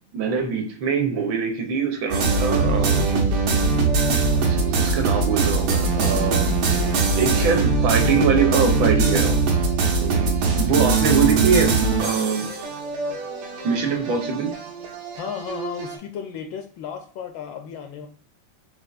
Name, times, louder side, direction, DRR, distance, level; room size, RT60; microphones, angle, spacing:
voice 1, 0.1-3.3 4.3-6.6 7.1-9.4 10.0-12.5 13.6-14.5, right 5 dB, 70° right, 3 dB, 1.4 m, -23 dB
sound 1, 2.1-16.0, right 4 dB, 85° right, 1.8 m, -22 dB
voice 2, 15.2-18.1, left 7 dB, 75° left, 5 dB, 1.1 m, -34 dB
5.3 x 2.8 x 2.4 m, 0.43 s
omnidirectional pair, 2.4 m